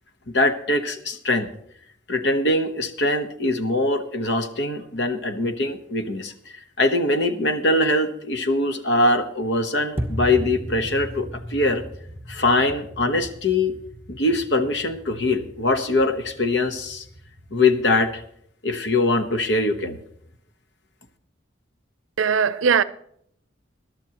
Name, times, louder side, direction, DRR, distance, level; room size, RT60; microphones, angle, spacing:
voice 1, 0.3-1.5 2.1-6.3 6.8-11.8 12.3-13.8 14.1-17.0 17.5-18.2 18.6-20.0, left 2 dB, 65° left, 1.0 m, -22 dB
sound 1, 10.0-18.2, equal, 10° right, 1.2 m, -37 dB
voice 2, 22.2-22.8, right 6 dB, 85° right, 0.5 m, -19 dB
21.0 x 11.5 x 2.9 m
head